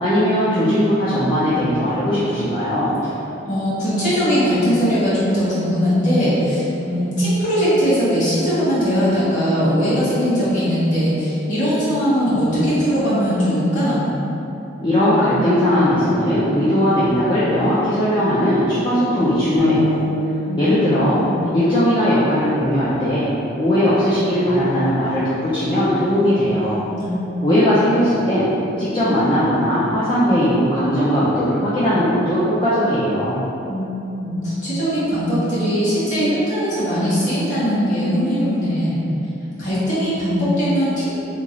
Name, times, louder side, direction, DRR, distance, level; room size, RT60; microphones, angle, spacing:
voice 1, 0.0-3.0 14.8-20.0 20.6-21.2 21.5-23.3 23.6-26.8 27.4-28.5 28.8-33.4, equal, 25° left, -10 dB, 0.4 m, -18 dB
voice 2, 3.4-14.1 20.5-20.6 21.1-21.4 27.0-27.2 33.7-39.0 39.6-41.1, equal, 40° left, -12 dB, 1.3 m, -20 dB
sound 1, 19.6-23.7, equal, 45° right, 0.4 m, -31 dB
3.0 x 2.3 x 3.8 m, 2.9 s
head